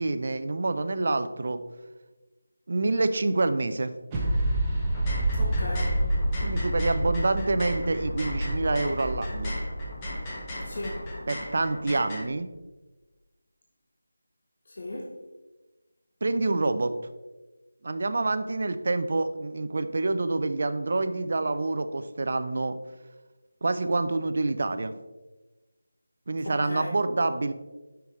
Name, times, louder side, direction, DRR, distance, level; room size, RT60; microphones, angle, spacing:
voice 1, 0.0-1.6 2.7-3.9 6.4-9.6 11.3-12.5 16.2-16.9 17.8-22.8 23.6-24.9 26.3-27.5, right 2 dB, 50° right, 10 dB, 0.5 m, -27 dB
sound 1, 4.1-11.6, right 1 dB, 10° right, 0.9 m, -29 dB
sound 2, 4.8-12.2, left 1 dB, 15° left, 1.0 m, -39 dB
voice 2, 5.4-6.0 10.6-11.0 14.7-15.1 26.4-26.9, left 1 dB, 50° left, -1 dB, 0.9 m, -36 dB
7.4 x 5.8 x 3.2 m, 1.2 s
figure-of-eight pair, 170°, 0 cm